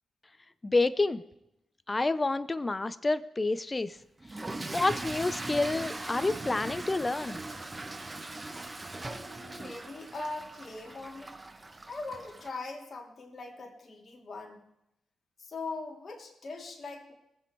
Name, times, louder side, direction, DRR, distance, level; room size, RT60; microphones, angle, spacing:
voice 1, 0.6-1.2 1.9-4.0 4.7-7.4, left 3 dB, 30° left, 15 dB, 0.7 m, -28 dB
Toilet flush / Fill (with liquid), 4.2-12.5, right 2 dB, 25° right, 1.1 m, -40 dB
voice 2, 9.0-11.4 11.9-14.6 15.4-17.1, left 3 dB, 50° left, 0 dB, 2.9 m, -41 dB
20.0 x 7.7 x 4.6 m, 0.83 s
hypercardioid pair, 40°, 0 cm